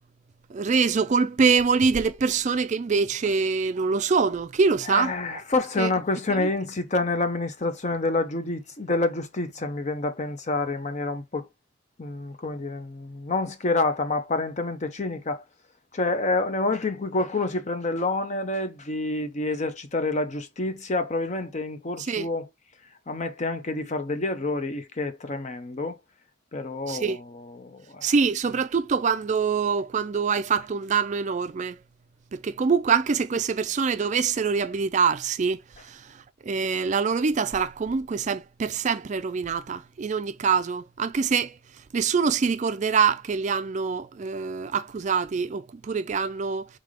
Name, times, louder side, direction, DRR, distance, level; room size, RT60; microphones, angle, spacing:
voice 1, 0.5-5.4 5.8-5.9 6.4-6.5 22.0-22.3 26.9-27.2 28.0-31.8 32.3-41.6 41.9-46.7, right 5 dB, 40° right, 0.4 m, -25 dB
voice 2, 4.9-11.5 12.0-15.4 15.9-22.5 23.1-26.0 26.5-28.1, left 2 dB, 40° left, 0.7 m, -28 dB
3.7 x 3.4 x 3.6 m
head